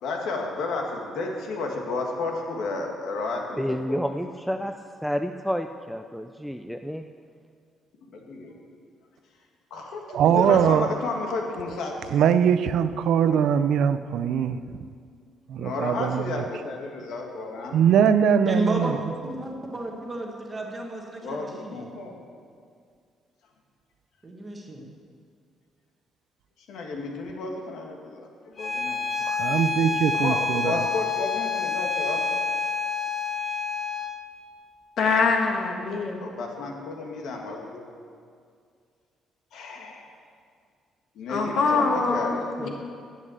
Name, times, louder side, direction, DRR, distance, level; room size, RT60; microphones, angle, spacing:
voice 1, 0.0-4.0 8.1-8.5 9.7-12.1 13.3-13.4 15.6-17.8 21.2-22.2 26.7-29.0 30.1-32.2 36.2-37.8 39.5-40.1 41.2-42.5, left 3 dB, 70° left, 1 dB, 1.9 m, -32 dB
voice 2, 3.6-4.7 5.0-7.0, equal, ahead, 6 dB, 0.3 m, -29 dB
voice 3, 10.1-10.9 12.1-14.6 15.5-16.2 17.7-19.0 29.2-30.8, right 8 dB, 65° right, 12 dB, 0.5 m, -21 dB
voice 4, 18.4-19.0 19.2-21.9 24.2-24.9 42.6-42.7, right 2 dB, 15° right, 0 dB, 1.4 m, -31 dB
Bowed string instrument, 28.6-34.2, left 4 dB, 25° left, 0.9 m, -28 dB
voice 5, 35.0-36.2 41.3-42.7, left 4 dB, 50° left, 2 dB, 1.5 m, -24 dB
11.0 x 8.5 x 8.0 m, 2.2 s
cardioid pair, 180°, 0 cm